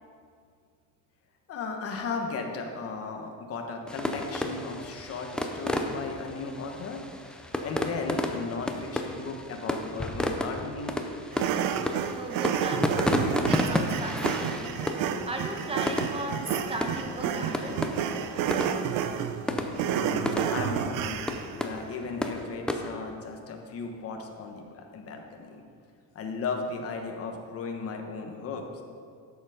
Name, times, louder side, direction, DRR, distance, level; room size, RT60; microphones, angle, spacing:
voice 1, 1.5-7.0 7.6-11.0 19.8-25.6 26.1-28.8, left 4 dB, 35° left, 3 dB, 1.2 m, -36 dB
sound 1, 3.9-22.9, left 1 dB, ahead, 0.3 m, -32 dB
Train, 10.3-25.8, left 4 dB, 85° left, 1.4 m, -48 dB
sound 2, 11.3-21.6, right 9 dB, 55° right, 0.6 m, -30 dB
voice 2, 12.1-13.1 13.5-17.8, right 2 dB, 15° right, 3 dB, 0.9 m, -37 dB
11.5 x 7.0 x 4.9 m, 2.2 s
cardioid pair, 155°, 40 cm